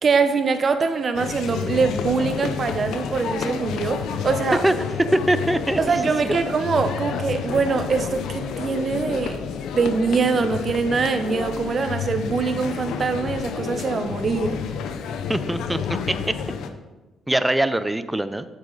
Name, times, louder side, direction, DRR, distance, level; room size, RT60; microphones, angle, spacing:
voice 1, 0.0-4.6 5.8-9.4 9.7-14.6, right 4 dB, 45° right, 9 dB, 0.7 m, -23 dB
sound 1, 1.1-16.7, left 7 dB, 80° left, 0.6 m, -30 dB
voice 2, 5.1-5.8 6.2-6.3 15.3-15.8 16.1-16.2 17.3-18.5, right 1 dB, 10° right, 13 dB, 0.5 m, -22 dB
8.4 x 6.6 x 3.9 m, 1.2 s
cardioid pair, 90°, 0 cm